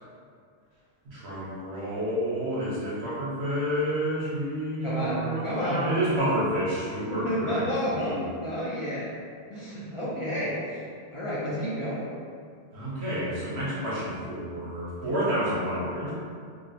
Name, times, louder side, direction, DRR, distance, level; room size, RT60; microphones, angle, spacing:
voice 1, 1.0-7.6 7.9-8.2 12.7-16.1, right 1 dB, 65° right, -7 dB, 1.1 m, -29 dB
voice 2, 4.8-5.9 7.1-9.0 9.5-10.8 11.1-12.1, equal, 45° left, -9 dB, 0.4 m, -30 dB
2.7 x 2.0 x 4.0 m, 2.2 s
omnidirectional pair, 1.2 m